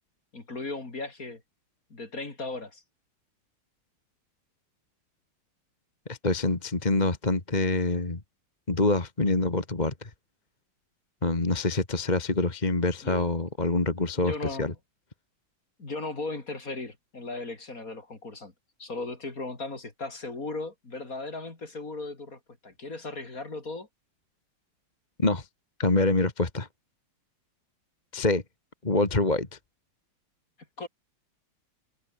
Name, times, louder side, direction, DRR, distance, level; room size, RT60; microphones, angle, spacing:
voice 1, 0.3-1.4 1.9-2.8 13.0-13.3 14.2-14.7 15.8-18.5 18.8-23.9 30.8-30.9, left 3 dB, 40° left, 4.1 m, -37 dB
voice 2, 6.1-8.2 8.7-10.1 11.2-14.7 25.2-25.5 25.8-26.7 28.1-28.4 28.8-29.5, left 2 dB, 20° left, 2.2 m, -26 dB
omnidirectional pair, 2.4 m